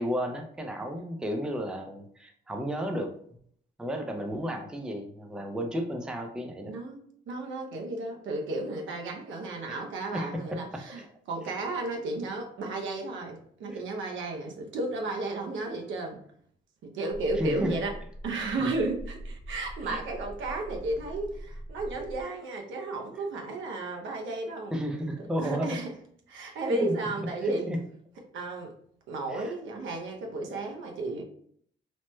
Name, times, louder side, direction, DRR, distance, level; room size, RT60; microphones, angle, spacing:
voice 1, 0.0-3.1 3.8-6.7 9.7-9.8 10.1-11.1 13.7-13.8 17.4-17.8 18.3-18.7 19.8-20.0 24.7-25.8 26.7-26.9 27.2-27.8 29.3-29.5, equal, 5° right, 3 dB, 0.4 m, -33 dB
voice 2, 6.7-11.0 11.3-16.2 16.8-17.9 18.2-24.7 25.4-25.9 26.3-27.7 28.3-28.7 29.1-31.2, right 2 dB, 75° right, 2 dB, 0.7 m, -33 dB
sound 1, 17.1-22.2, right 1 dB, 30° right, 1.0 m, -43 dB
3.1 x 2.1 x 3.0 m, 0.63 s
cardioid pair, 90°, 20 cm